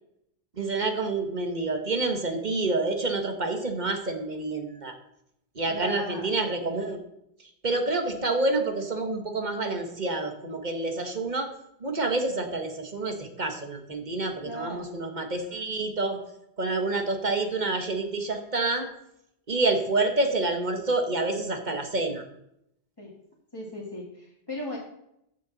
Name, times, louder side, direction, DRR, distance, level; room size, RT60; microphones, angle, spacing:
voice 1, 0.6-5.0 5.5-7.0 7.6-11.5 11.8-16.2 16.6-18.9 19.5-22.2, right 2 dB, 45° right, 5 dB, 1.4 m, -28 dB
voice 2, 5.7-6.3 14.4-14.9 23.0-23.1 23.5-24.8, left 1 dB, 20° left, -5 dB, 1.9 m, -37 dB
13.0 x 7.2 x 4.0 m, 0.78 s
omnidirectional pair, 1.1 m